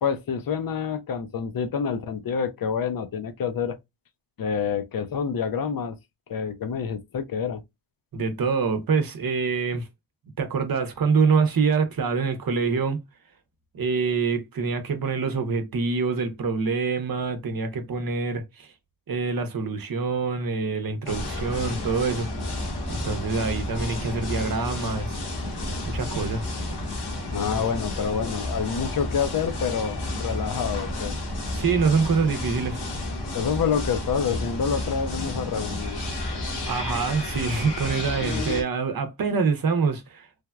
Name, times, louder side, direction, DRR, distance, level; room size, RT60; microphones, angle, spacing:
voice 1, 0.0-3.8 4.4-6.0 6.3-7.6 27.3-31.2 33.3-36.0, left 6 dB, 60° left, 0.6 m, -27 dB
voice 2, 8.1-9.9 10.4-13.0 13.7-18.7 19.1-22.3 22.9-25.2 25.9-26.5 31.5-32.8 36.7-40.3, right 5 dB, 60° right, 0.7 m, -25 dB
sound 1, 21.1-38.6, left 1 dB, 80° left, 1.1 m, -31 dB
3.3 x 2.1 x 2.3 m
cardioid pair, 55°, 39 cm